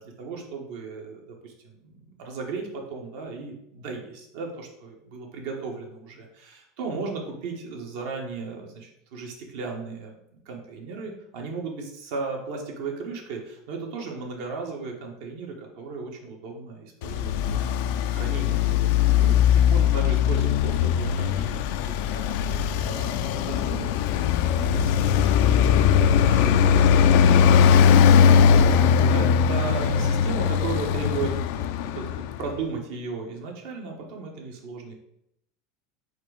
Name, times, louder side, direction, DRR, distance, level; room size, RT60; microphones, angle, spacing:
voice 1, 0.0-18.9 19.2-28.2 28.5-28.6 29.1-31.4 31.8-32.0 32.4-34.9, right 4 dB, 70° right, 1 dB, 1.2 m, -36 dB
Traffic noise roadway noise, 17.0-32.5, left 7 dB, 70° left, 0.3 m, -20 dB
4.3 x 2.6 x 4.7 m, 0.78 s
supercardioid pair, 115°, 0 cm